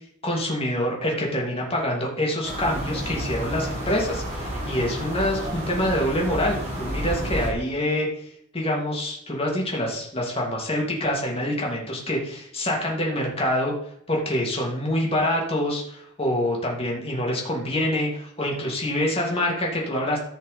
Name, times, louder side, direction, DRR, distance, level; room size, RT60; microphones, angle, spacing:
voice 1, 0.2-8.3 8.5-13.7 14.1-20.2, left 1 dB, 25° left, -2 dB, 2.8 m, -26 dB
sound 1, 2.4-7.5, equal, 30° right, 3.9 m, -30 dB
14.5 x 5.5 x 5.3 m, 0.69 s
head